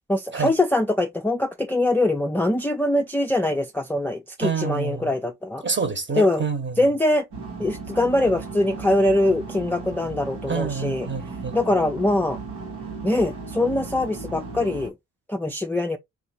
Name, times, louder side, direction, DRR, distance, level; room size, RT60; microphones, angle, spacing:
voice 1, 0.1-5.6 6.1-6.4 6.8-7.2 7.6-11.1 11.5-12.4 13.0-14.9 15.3-16.0, left 1 dB, 5° left, 0.4 m, -23 dB
voice 2, 4.4-5.1 5.6-6.8 10.5-11.6, right 5 dB, 30° right, 1.1 m, -27 dB
sound 1, 7.3-14.9, right 4 dB, 85° right, 1.2 m, -36 dB
2.7 x 2.5 x 4.2 m
hypercardioid pair, 45°, 37 cm